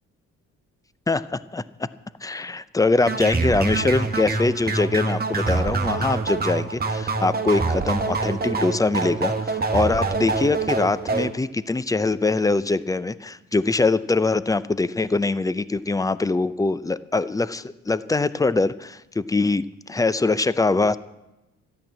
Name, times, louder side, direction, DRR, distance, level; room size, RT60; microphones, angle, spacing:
voice 1, 1.1-1.9 2.2-21.0, left 3 dB, 10° left, 16 dB, 0.5 m, -23 dB
sound 1, 3.0-11.3, right 3 dB, 30° right, 1.3 m, -25 dB
13.0 x 10.5 x 7.4 m, 0.97 s
cardioid pair, 90°, 30 cm